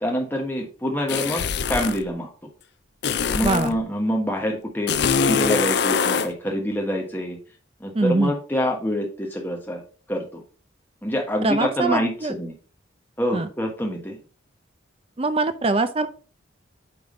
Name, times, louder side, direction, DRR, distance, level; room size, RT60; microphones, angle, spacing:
voice 1, 0.0-1.4 1.7-2.3 3.3-4.9 5.3-7.4 7.8-9.8 10.1-10.4 11.0-12.5 13.2-14.2, equal, 10° left, 1 dB, 1.3 m, -26 dB
sound 1, 1.1-2.0 3.0-3.7 4.9-6.3, left 6 dB, 55° left, 0.4 m, -23 dB
voice 2, 3.4-3.7 7.9-8.4 11.4-12.3 13.3-13.5 15.2-16.1, right 3 dB, 30° right, 11 dB, 0.5 m, -23 dB
8.6 x 3.7 x 3.8 m, 0.38 s
head